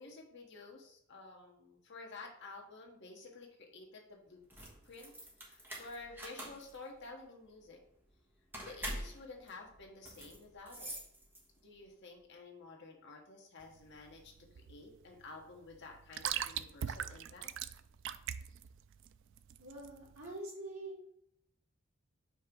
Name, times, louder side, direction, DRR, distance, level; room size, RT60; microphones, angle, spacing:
voice 1, 0.0-4.4 4.8-7.8 8.6-10.9 11.6-17.5, left 3 dB, 55° left, 1 dB, 1.2 m, -52 dB
sound 1, 4.4-11.7, right 1 dB, 10° right, 1.2 m, -46 dB
sound 2, 13.6-20.3, right 9 dB, 60° right, 0.3 m, -42 dB
voice 2, 19.6-21.0, right 1 dB, 80° right, -4 dB, 2.6 m, -45 dB
5.3 x 3.5 x 5.3 m, 0.71 s
head